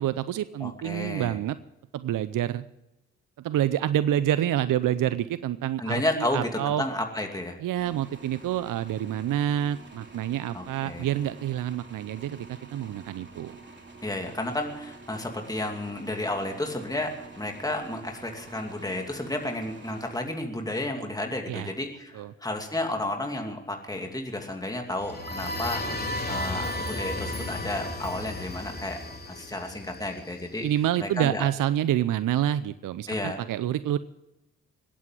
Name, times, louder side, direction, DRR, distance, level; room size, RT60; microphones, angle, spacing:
voice 1, 0.0-1.6 1.9-2.6 3.4-6.8 7.6-13.5 21.5-21.7 22.1-22.3 30.6-34.0, right 11 dB, 60° right, 15 dB, 0.6 m, -27 dB
voice 2, 0.6-1.4 5.8-7.6 10.5-11.1 14.0-29.0 29.3-30.7 31.0-31.5 33.1-33.4, left 1 dB, 10° left, 3 dB, 2.6 m, -32 dB
sound 1, 7.8-20.8, right 3 dB, 30° right, 3.0 m, -48 dB
sound 2, 24.9-30.6, left 1 dB, 25° left, 3.3 m, -34 dB
21.0 x 8.4 x 7.5 m, 0.96 s
supercardioid pair, 50°, 36 cm